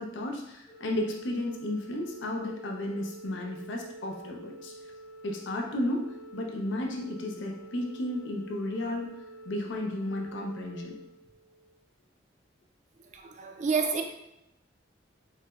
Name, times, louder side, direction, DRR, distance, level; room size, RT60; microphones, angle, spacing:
voice 1, 0.0-4.7 5.2-10.9, left 1 dB, 90° left, 1 dB, 0.5 m, -33 dB
Organ, 0.7-11.7, right 1 dB, 20° left, 0.5 m, -48 dB
voice 2, 13.1-14.0, right 5 dB, 40° right, 4 dB, 0.3 m, -29 dB
3.2 x 2.9 x 2.3 m, 0.88 s
head